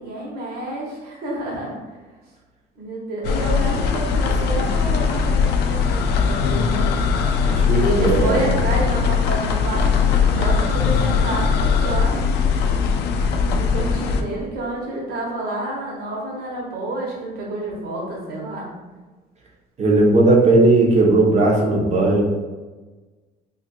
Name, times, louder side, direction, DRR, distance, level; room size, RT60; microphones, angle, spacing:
voice 1, 0.0-1.8 2.8-6.9 7.8-12.2 13.5-18.7, right 2 dB, 65° right, -3 dB, 1.3 m, -29 dB
sound 1, 3.2-14.2, left 5 dB, 75° left, 0.4 m, -20 dB
voice 2, 7.5-8.5 19.8-22.2, right 2 dB, 40° right, -2 dB, 0.9 m, -16 dB
2.8 x 2.6 x 4.2 m, 1.3 s
cardioid pair, 110°, 17 cm